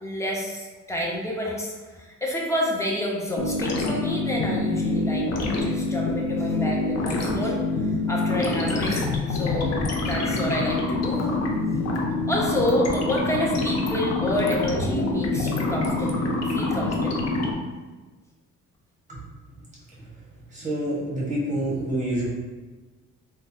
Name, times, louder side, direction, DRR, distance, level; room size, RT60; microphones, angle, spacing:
voice 1, 0.0-11.4 12.3-17.3, left 1 dB, 10° left, -2 dB, 0.7 m, -29 dB
sound 1, 3.4-17.5, left 2 dB, 60° left, 0.6 m, -26 dB
voice 2, 20.5-22.3, right 1 dB, 25° right, -7 dB, 1.3 m, -27 dB
3.6 x 2.2 x 2.7 m, 1.3 s
cardioid pair, 90°, 30 cm